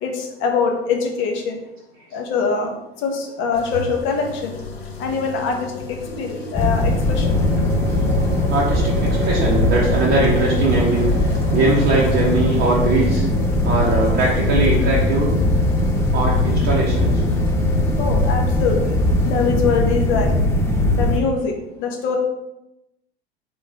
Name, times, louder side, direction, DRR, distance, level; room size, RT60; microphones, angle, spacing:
voice 1, 0.0-1.6 2.1-2.7 3.0-4.6 5.0-7.3 18.0-19.0 19.2-20.3 20.9-21.5 21.8-22.2, left 5 dB, 40° left, 2 dB, 0.7 m, -23 dB
sound 1, 3.5-19.5, left 4 dB, 75° left, 0.7 m, -34 dB
voice 2, 6.1-6.5 8.5-13.2 13.6-15.3 16.1-17.2 20.7-20.8, right 3 dB, 30° right, -5 dB, 0.8 m, -21 dB
sound 2, 6.5-21.2, left 1 dB, 10° left, 0.3 m, -20 dB
sound 3, 6.6-18.0, right 4 dB, 75° right, 0.6 m, -34 dB
3.7 x 3.0 x 3.5 m, 0.89 s
figure-of-eight pair, 75°, 31 cm